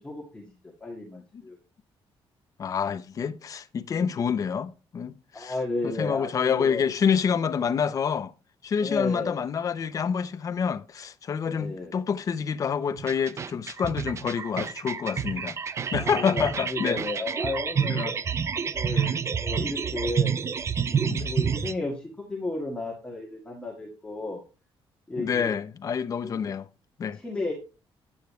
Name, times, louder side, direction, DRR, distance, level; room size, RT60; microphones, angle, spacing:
voice 1, 0.0-1.6 5.3-6.8 8.8-9.4 11.4-11.9 15.9-18.0 18.7-20.4 20.9-24.4 25.1-25.5 26.2-26.4 27.1-27.5, left 2 dB, 10° left, 1.8 m, -33 dB
voice 2, 2.6-5.5 5.8-8.3 8.6-15.6 15.9-17.0 17.9-18.1 18.9-19.0 21.1-21.4 25.2-26.7 27.0-27.2, left 7 dB, 35° left, 0.6 m, -27 dB
sound 1, 13.0-21.7, right 7 dB, 30° right, 0.4 m, -29 dB
9.3 x 8.6 x 3.1 m
cardioid pair, 175°, 10 cm